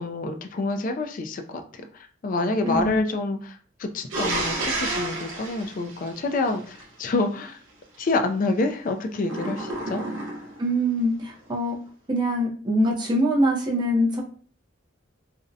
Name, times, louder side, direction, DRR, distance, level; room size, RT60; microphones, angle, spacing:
voice 1, 0.0-1.6 2.2-7.6 8.0-10.0, left 2 dB, 45° left, 6 dB, 0.3 m, -27 dB
voice 2, 2.6-3.0 10.6-11.8 12.1-14.2, equal, 25° right, -2 dB, 0.5 m, -23 dB
sound 1, 4.1-6.8 9.2-10.7, right 2 dB, 85° right, 0.7 m, -30 dB
2.5 x 2.0 x 2.5 m, 0.44 s
head